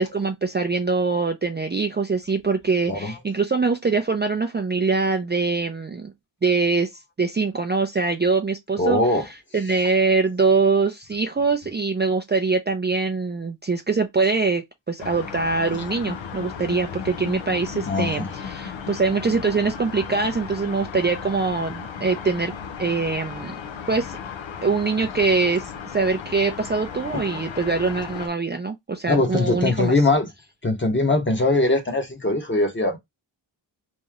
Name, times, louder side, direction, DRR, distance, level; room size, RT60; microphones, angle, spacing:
voice 1, 0.0-6.1 6.4-9.0 9.5-22.5 22.8-23.5 23.9-24.2 24.6-29.9, right 4 dB, 25° right, 0.4 m, -23 dB
voice 2, 8.8-9.3 17.9-18.3 27.1-27.4 29.1-30.3 30.6-33.0, left 2 dB, 25° left, 1.0 m, -21 dB
sound 1, 15.0-28.3, left 7 dB, 75° left, 0.7 m, -35 dB
3.1 x 2.7 x 3.5 m
wide cardioid pair, 135°, 46 cm